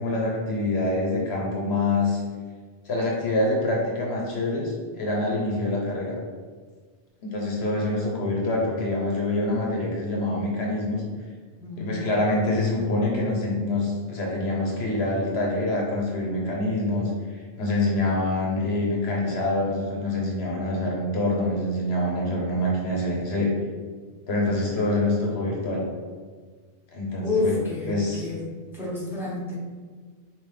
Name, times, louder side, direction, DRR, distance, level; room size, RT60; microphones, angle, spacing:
voice 1, 0.0-2.2 2.8-6.2 7.2-11.0 11.8-17.1 17.6-23.5 24.3-25.8 26.9-27.6 27.9-28.3, left 2 dB, 70° left, -2 dB, 1.0 m, -25 dB
voice 2, 11.6-12.0 27.2-28.5 28.7-29.5, left 3 dB, ahead, -7 dB, 1.1 m, -29 dB
5.4 x 2.5 x 3.2 m, 1.5 s
omnidirectional pair, 1.2 m